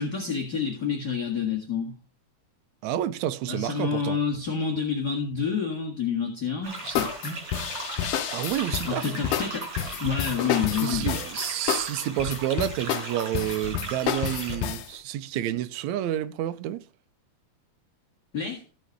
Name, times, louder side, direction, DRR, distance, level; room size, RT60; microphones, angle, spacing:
voice 1, 0.0-1.9 3.5-7.4 8.9-9.7 10.0-11.1 18.3-18.6, left 6 dB, 35° left, 1.9 m, -28 dB
voice 2, 2.8-4.2 8.3-9.1 10.8-16.8, right 12 dB, 75° right, 1.7 m, -29 dB
sound 1, 6.6-14.6, right 3 dB, 45° right, 5.4 m, -38 dB
sound 2, 6.9-14.9, left 10 dB, 80° left, 2.4 m, -30 dB
15.5 x 5.4 x 4.6 m
omnidirectional pair, 3.7 m